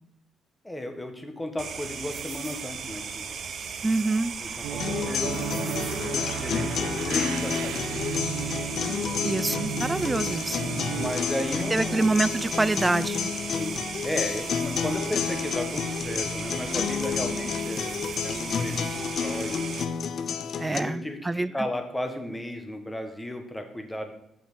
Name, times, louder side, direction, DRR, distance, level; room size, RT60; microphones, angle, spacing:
voice 1, 0.6-3.3 4.4-8.4 11.0-12.1 13.5-19.7 20.7-24.1, left 1 dB, 10° left, 5 dB, 1.5 m, -34 dB
sound 1, 1.6-19.8, right 6 dB, 60° right, 1.0 m, -37 dB
voice 2, 3.8-4.3 9.2-10.6 11.7-13.3 20.6-21.5, right 2 dB, 15° right, 18 dB, 0.4 m, -26 dB
sound 2, 4.6-11.1, right 11 dB, 90° right, 0.4 m, -35 dB
sound 3, 4.8-20.8, left 6 dB, 60° left, 0.6 m, -30 dB
7.3 x 5.9 x 6.9 m, 0.80 s
cardioid pair, 90°, 0 cm